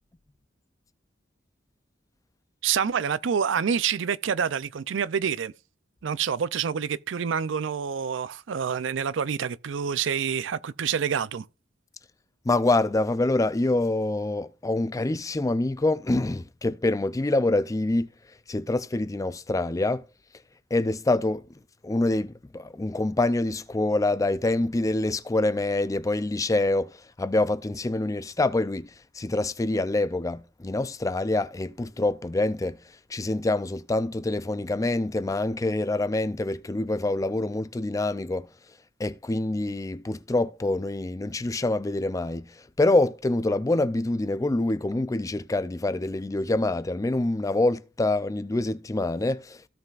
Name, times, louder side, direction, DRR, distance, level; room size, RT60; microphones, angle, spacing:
voice 1, 2.6-5.5 6.0-11.5, right 7 dB, 70° right, 0.5 m, -27 dB
voice 2, 12.5-18.1 18.5-20.0 20.7-21.4 21.8-26.9 27.2-28.9 29.2-32.8 33.1-38.5 39.0-42.5 42.8-49.7, left 2 dB, 15° left, 0.4 m, -26 dB
16.0 x 5.7 x 2.4 m
head